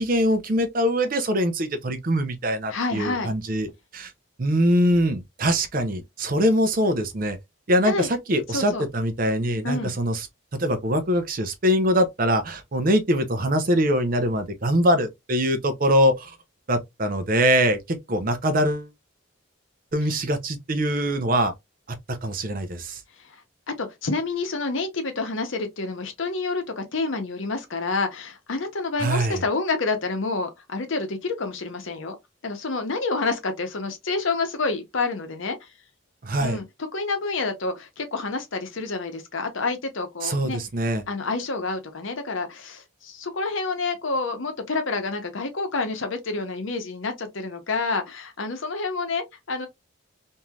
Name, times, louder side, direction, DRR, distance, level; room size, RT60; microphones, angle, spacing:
voice 1, 0.0-4.1 4.4-7.4 7.7-10.2 10.5-16.4 16.7-18.9 19.9-21.5 22.1-23.0 29.0-29.4 36.2-36.6 40.2-41.0, equal, 40° right, 0.5 m, -23 dB
voice 2, 2.7-3.3 7.8-8.1 8.5-8.8 9.6-10.0 23.2-23.4 23.7-32.2 32.4-35.7 36.4-36.6 36.9-40.6 41.1-49.7, left 3 dB, 70° left, 0.8 m, -28 dB
3.1 x 2.6 x 2.3 m
head